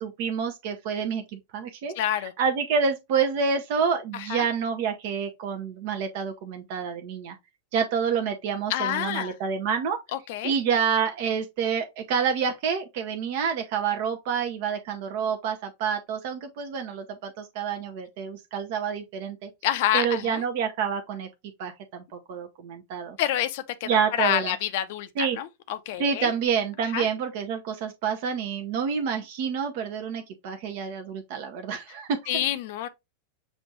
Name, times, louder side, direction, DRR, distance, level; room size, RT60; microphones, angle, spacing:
voice 1, 0.0-1.9 2.2-7.4 7.7-10.0 10.4-19.5 19.9-21.3 21.6-23.2 23.9-24.5 25.2-25.4 26.0-32.2, right 6 dB, 50° right, 0.6 m, -28 dB
voice 2, 2.0-2.3 4.1-4.5 8.7-9.3 10.1-10.5 19.6-20.4 23.2-26.3 26.9-27.1 32.3-32.9, left 12 dB, 50° left, 0.6 m, -28 dB
6.2 x 2.5 x 3.0 m
figure-of-eight pair, 90°, 0 cm